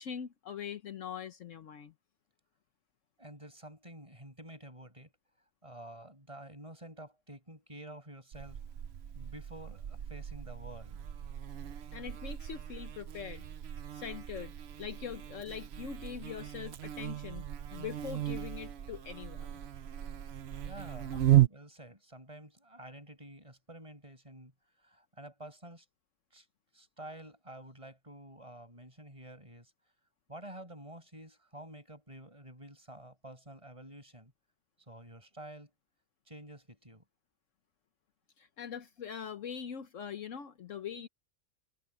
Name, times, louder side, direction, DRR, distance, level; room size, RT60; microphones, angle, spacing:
voice 1, 0.0-1.9 11.9-13.4 13.9-14.5 14.8-17.5 17.7-19.6 38.4-41.1, left 8 dB, 65° left, 1.2 m, -42 dB
voice 2, 3.2-5.1 5.6-8.6 9.1-11.0 20.6-24.5 24.8-25.9 26.3-26.5 26.7-29.7 30.3-34.3 34.9-35.7 36.3-37.0, right 1 dB, 20° right, 7.0 m, -49 dB
Buzz, 8.3-21.5, right 13 dB, 55° right, 0.9 m, -35 dB
omnidirectional pair, 1.4 m